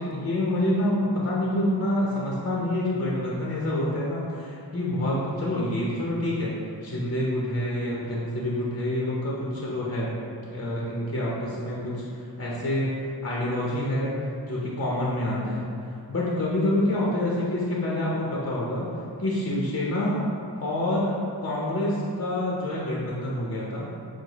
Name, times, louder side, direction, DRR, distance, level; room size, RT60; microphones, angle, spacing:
voice 1, 0.0-6.5 6.8-10.1 10.4-14.1 14.5-15.6 16.1-18.9 19.2-20.2 20.5-23.9, left 1 dB, 35° left, -5 dB, 0.7 m, -27 dB
4.6 x 2.1 x 3.9 m, 2.4 s
wide cardioid pair, 70°, 44 cm